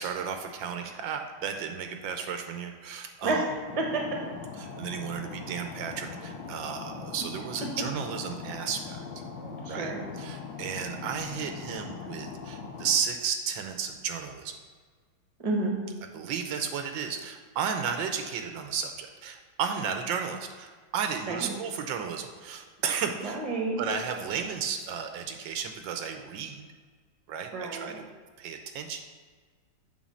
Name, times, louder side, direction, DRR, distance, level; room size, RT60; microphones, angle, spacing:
voice 1, 0.0-3.5 4.6-9.0 9.7-14.6 16.1-23.4 23.8-26.7 27.3-28.1 28.4-29.0, right 7 dB, 80° right, 6 dB, 1.3 m, -33 dB
voice 2, 3.2-4.0 9.6-10.0 15.4-15.8 21.3-21.5 23.2-23.8 27.5-28.0, right 2 dB, 25° right, 1 dB, 1.0 m, -30 dB
sound 1, 3.7-13.0, left 5 dB, 70° left, 1.6 m, -41 dB
8.1 x 3.9 x 6.2 m, 1.5 s
omnidirectional pair, 2.1 m